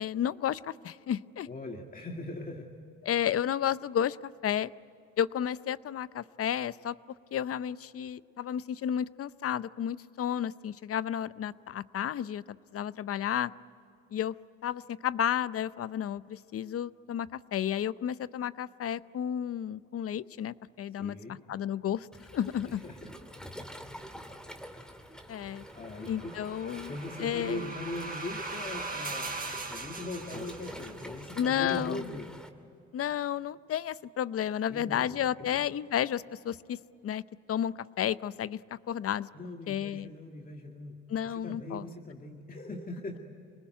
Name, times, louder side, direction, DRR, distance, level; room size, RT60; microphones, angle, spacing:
voice 1, 0.0-1.5 3.0-4.7 5.2-7.0 7.3-13.5 14.1-14.3 14.6-22.1 22.3-22.8 25.3-25.6 26.1-27.6 31.4-32.1 32.9-37.2 37.5-39.3 39.7-40.1 41.1-41.9, left 9 dB, 50° left, 17 dB, 0.6 m, -32 dB
voice 2, 1.5-2.7 20.9-21.4 22.4-23.1 25.7-26.3 26.9-32.3 34.7-35.6 39.3-41.0 41.2-43.2, left 2 dB, 30° left, 2 dB, 2.0 m, -41 dB
Waves surf, 22.1-32.5, equal, ahead, 2.0 m, -46 dB
sound 1, 25.9-31.2, right 3 dB, 30° right, 3.7 m, -40 dB
26.5 x 20.0 x 9.3 m, 2.7 s
cardioid pair, 90°, 30 cm